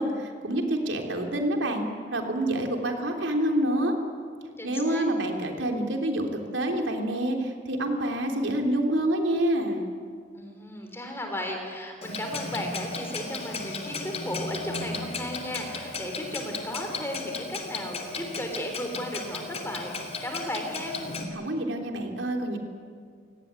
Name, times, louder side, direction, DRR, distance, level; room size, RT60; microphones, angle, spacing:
voice 1, 0.0-3.9 4.6-9.9 21.3-22.6, right 1 dB, 75° right, 3 dB, 3.4 m, -27 dB
voice 2, 4.6-5.1 10.3-21.0, left 1 dB, 10° left, 3 dB, 4.2 m, -35 dB
Clock, 12.0-21.2, left 3 dB, 35° left, 3.1 m, -35 dB
29.0 x 18.0 x 9.7 m, 2.1 s
head